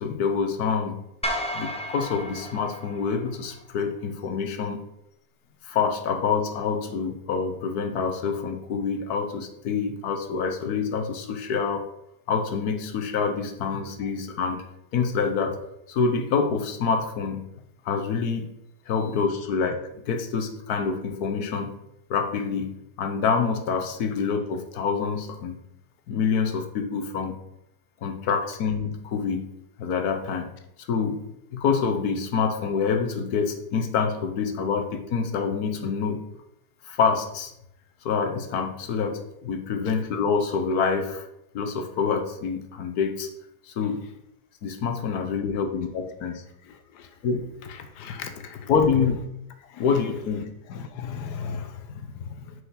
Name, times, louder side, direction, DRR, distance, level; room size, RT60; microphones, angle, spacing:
voice 1, 0.0-1.0 1.5-4.8 5.6-11.9 12.3-14.6 14.9-15.6 15.9-17.5 17.8-18.5 18.9-21.8 22.1-25.6 26.1-27.4 28.0-29.5 29.8-30.5 30.8-31.2 31.5-36.3 36.8-37.5 38.0-41.3 41.5-43.3 43.6-44.1 44.6-46.4 47.2-47.5 48.7-49.2 49.8-50.5, left 5 dB, 70° left, 6 dB, 1.4 m, -26 dB
sound 1, 1.2-3.6, equal, 10° left, 0.3 m, -33 dB
voice 2, 46.7-47.1 47.7-48.7 49.7-49.9 50.7-52.5, left 6 dB, 85° left, 7 dB, 1.3 m, -37 dB
6.2 x 4.7 x 5.7 m, 0.82 s
omnidirectional pair, 1.7 m